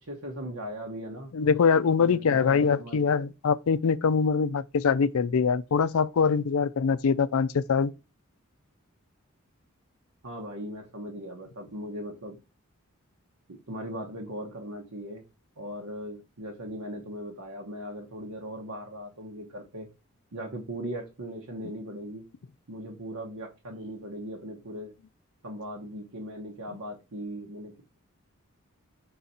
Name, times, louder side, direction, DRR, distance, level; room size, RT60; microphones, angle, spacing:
voice 1, 0.0-1.3 2.0-3.0 10.2-12.4 13.7-15.2 15.6-19.9 20.3-22.2 22.7-24.9 25.4-28.0, equal, 85° right, 1.2 m, -39 dB
voice 2, 1.3-7.9, left 5 dB, 80° left, 0.4 m, -23 dB
6.1 x 4.0 x 4.2 m
head